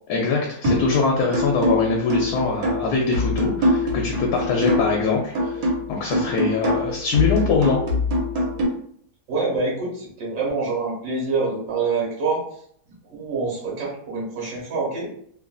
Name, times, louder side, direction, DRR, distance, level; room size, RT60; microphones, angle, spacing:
voice 1, 0.1-7.8, left 4 dB, 85° left, 0 dB, 1.1 m, -23 dB
sound 1, 0.6-1.0 1.3-5.0 5.3-8.6, left 1 dB, 80° right, 1.4 m, -23 dB
voice 2, 9.3-12.4 13.1-15.1, right 4 dB, 55° right, -4 dB, 1.4 m, -26 dB
3.1 x 2.5 x 2.3 m, 0.65 s
omnidirectional pair, 1.6 m